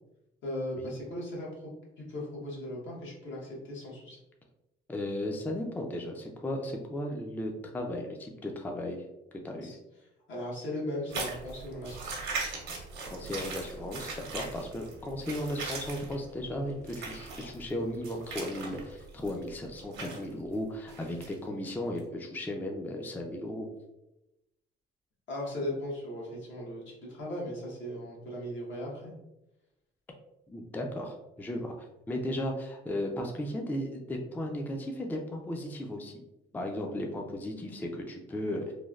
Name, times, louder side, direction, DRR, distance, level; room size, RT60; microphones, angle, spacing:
voice 1, 0.4-4.2 9.6-9.8 10.3-12.3 25.3-29.1, left 1 dB, 70° left, -4 dB, 1.1 m, -38 dB
voice 2, 4.9-9.0 9.4-9.8 13.1-23.7 30.5-36.2 36.5-38.7, left 1 dB, 10° left, 2 dB, 0.4 m, -35 dB
sound 1, 11.1-20.3 20.9-21.3 22.0-22.1, right 3 dB, 80° right, 0.8 m, -40 dB
3.2 x 2.1 x 2.3 m, 0.93 s
cardioid pair, 90°, 20 cm